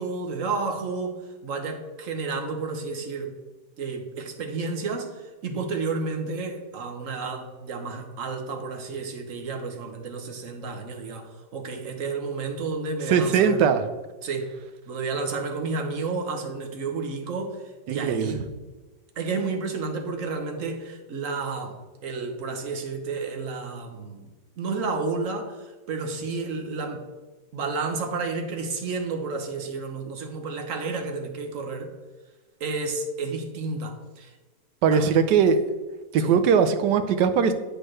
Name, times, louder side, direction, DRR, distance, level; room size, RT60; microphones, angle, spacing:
voice 1, 0.0-3.3 3.8-13.6 14.2-14.5 14.9-17.6 17.9-18.4 19.2-21.8 22.0-24.3 24.6-27.1 27.5-32.0 32.6-34.3 34.9-35.1 36.2-36.4, right 4 dB, 55° right, 4 dB, 1.2 m, -31 dB
voice 2, 13.1-13.8 17.9-18.4 34.8-35.6 36.1-37.5, right 6 dB, 80° right, 10 dB, 1.3 m, -20 dB
8.1 x 6.5 x 3.2 m, 1.2 s
omnidirectional pair, 1.8 m